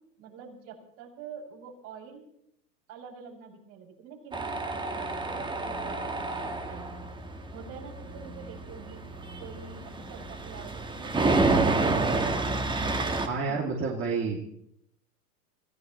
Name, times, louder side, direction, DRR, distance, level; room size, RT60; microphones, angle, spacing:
voice 1, 0.2-2.2 2.9-7.1 7.5-9.0 9.4-12.9 13.5-13.7, right 6 dB, 50° right, -2 dB, 6.9 m, -46 dB
Tools, 4.3-13.3, right 3 dB, 10° right, 1.4 m, -29 dB
voice 2, 13.3-14.4, right 4 dB, 25° right, -3 dB, 2.7 m, -29 dB
27.0 x 15.5 x 3.2 m, 0.73 s
hypercardioid pair, 115°, 48 cm